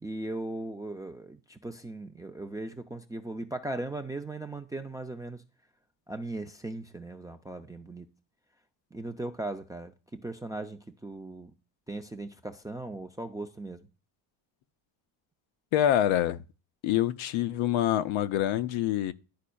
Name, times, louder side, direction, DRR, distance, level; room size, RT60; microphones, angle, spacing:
voice 1, 0.0-5.4 6.1-8.1 8.9-11.5 11.9-13.8, right 2 dB, 10° right, 0.3 m, -38 dB
voice 2, 15.7-16.4 16.8-19.1, left 11 dB, 70° left, 0.7 m, -26 dB
11.5 x 4.2 x 2.3 m
supercardioid pair, 85°, 49 cm